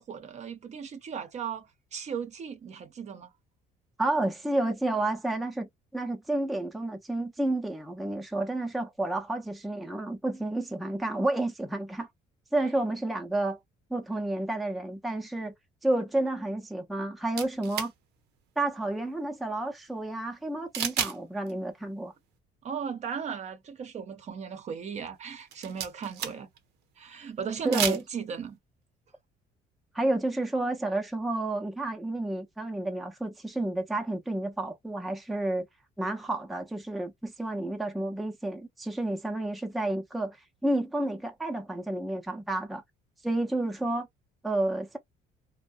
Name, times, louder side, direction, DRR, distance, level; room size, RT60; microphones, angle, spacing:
voice 1, 0.0-3.3 22.6-26.5 27.0-28.6, right 7 dB, 40° right, 0.6 m, -36 dB
voice 2, 4.0-12.1 12.5-13.6 13.9-15.5 15.8-17.9 18.6-22.1 27.6-28.0 29.9-35.6 36.0-40.4 40.6-42.8 43.2-44.1 44.4-45.0, right 2 dB, ahead, 0.5 m, -30 dB
sound 1, 17.3-17.9 20.7-21.2 21.5-21.6 25.4-26.6 27.6-28.0, right 9 dB, 80° right, 0.6 m, -31 dB
2.5 x 2.1 x 2.4 m
cardioid pair, 110°, 17 cm